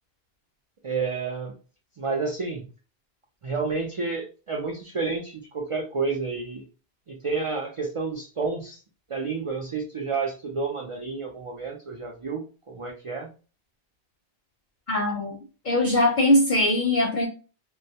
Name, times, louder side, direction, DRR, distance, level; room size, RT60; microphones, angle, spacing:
voice 1, 0.8-1.5 2.0-2.7 3.4-6.6 7.1-8.8 9.1-13.3, right 4 dB, 60° right, 0 dB, 0.3 m, -30 dB
voice 2, 14.9-15.4 15.6-17.3, left 1 dB, 55° left, -2 dB, 0.6 m, -21 dB
2.2 x 2.1 x 2.7 m, 0.34 s
omnidirectional pair, 1.1 m